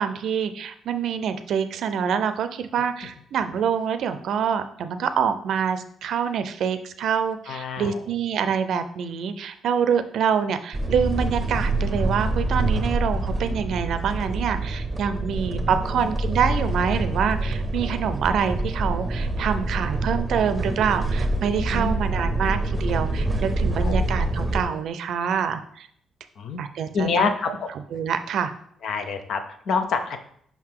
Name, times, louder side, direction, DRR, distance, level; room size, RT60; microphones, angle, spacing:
voice 1, 0.0-25.9 26.6-27.6 27.9-28.5, right 7 dB, 70° right, 10 dB, 0.5 m, -26 dB
voice 2, 7.5-8.0 15.3-16.1 21.7-21.9 23.8-24.0 26.4-26.6 26.9-27.7 28.8-30.2, left 5 dB, 65° left, 7 dB, 0.7 m, -27 dB
sound 1, 10.7-24.6, right 2 dB, 20° right, 0.7 m, -26 dB
5.4 x 3.7 x 4.7 m, 0.66 s
cardioid pair, 90°, 0 cm